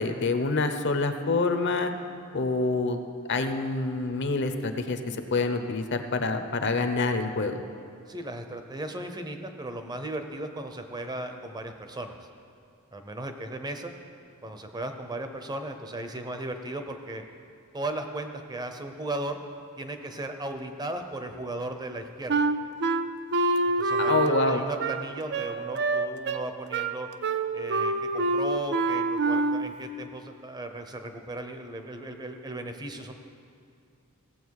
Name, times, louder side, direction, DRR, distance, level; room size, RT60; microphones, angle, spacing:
voice 1, 0.0-1.9 2.3-3.0 3.3-7.6 24.0-24.6, left 3 dB, 55° left, 7 dB, 0.8 m, -26 dB
voice 2, 8.1-12.2 12.9-13.9 14.4-17.2 17.7-19.4 19.8-22.5 23.8-27.1 27.5-33.1, right 2 dB, 20° right, 6 dB, 0.7 m, -36 dB
Wind instrument woodwind instrument, 22.3-29.7, right 3 dB, 50° right, 0.4 m, -26 dB
16.5 x 7.7 x 4.7 m, 2.4 s
head